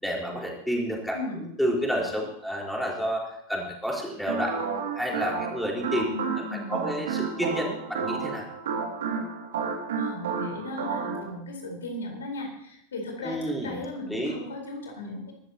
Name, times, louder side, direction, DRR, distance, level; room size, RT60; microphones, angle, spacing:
voice 1, 0.0-1.2 1.6-4.6 4.9-6.1 6.7-8.4 13.2-13.8 14.1-14.3, equal, ahead, -1 dB, 4.3 m, -29 dB
voice 2, 1.1-1.5 6.0-7.0 10.0-15.2, left 2 dB, 65° left, 2 dB, 4.1 m, -36 dB
sound 1, 4.3-11.3, right 5 dB, 60° right, 2.4 m, -31 dB
22.5 x 13.5 x 2.9 m, 0.73 s
figure-of-eight pair, 90°, 0 cm